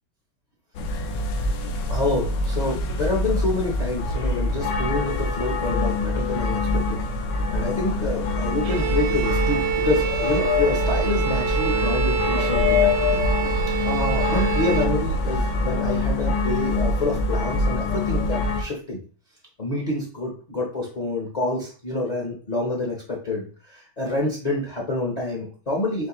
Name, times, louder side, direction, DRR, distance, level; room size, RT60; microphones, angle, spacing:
sound 1, 0.7-18.6, left 3 dB, 75° left, 1.3 m, -24 dB
voice 1, 1.9-7.0 7.5-19.0 19.6-26.1, left 2 dB, 40° left, -2 dB, 0.6 m, -27 dB
Bowed string instrument, 8.6-15.0, right 9 dB, 70° right, 1.1 m, -26 dB
4.4 x 3.2 x 3.0 m, 0.39 s
omnidirectional pair, 2.0 m